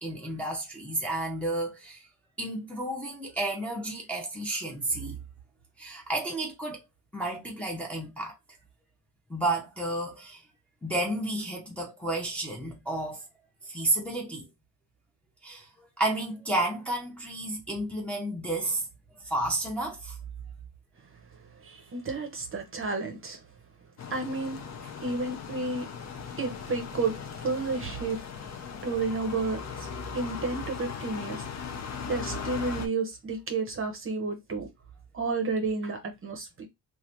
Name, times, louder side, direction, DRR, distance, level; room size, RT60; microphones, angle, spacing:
voice 1, 0.0-2.1 2.4-5.2 5.8-6.8 7.1-8.3 9.3-10.4 10.8-13.2 13.6-14.5 15.4-18.9 19.2-20.2 28.6-28.7, right 2 dB, 5° left, 0.6 m, -31 dB
voice 2, 21.6-23.4 24.1-24.6 25.0-25.9 26.4-27.1 27.4-28.2 28.8-29.9 30.1-31.4 32.1-34.7 35.1-36.7, right 3 dB, 35° right, 0.7 m, -31 dB
sound 1, 24.0-32.9, left 5 dB, 45° left, 0.6 m, -38 dB
3.2 x 2.5 x 2.7 m
wide cardioid pair, 175°, 39 cm